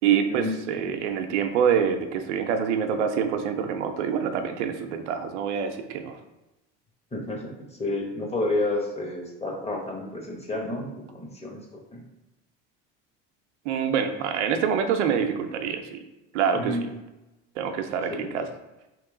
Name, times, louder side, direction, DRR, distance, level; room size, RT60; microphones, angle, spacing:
voice 1, 0.0-6.2 13.7-16.0 16.3-16.8 17.6-18.5, right 7 dB, 85° right, 6 dB, 0.5 m, -26 dB
voice 2, 7.1-12.0 16.5-16.9 18.1-18.3, left 2 dB, 20° left, 1 dB, 1.0 m, -30 dB
3.0 x 2.9 x 3.7 m, 1.0 s
hypercardioid pair, 85°, 34 cm